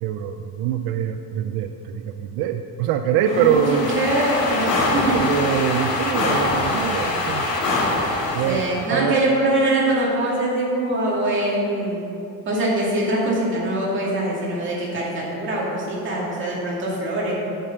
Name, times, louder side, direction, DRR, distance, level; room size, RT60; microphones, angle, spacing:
voice 1, 0.0-3.9 5.1-7.5 8.3-9.2, right 9 dB, 85° right, 7 dB, 0.5 m, -24 dB
sound 1, 3.2-8.9, left 2 dB, 85° left, 2.2 m, -24 dB
voice 2, 3.2-5.2 8.4-12.0 12.5-17.4, right 1 dB, 35° right, -5 dB, 2.4 m, -23 dB
8.9 x 6.6 x 5.3 m, 2.6 s
cardioid pair, 155°, 35 cm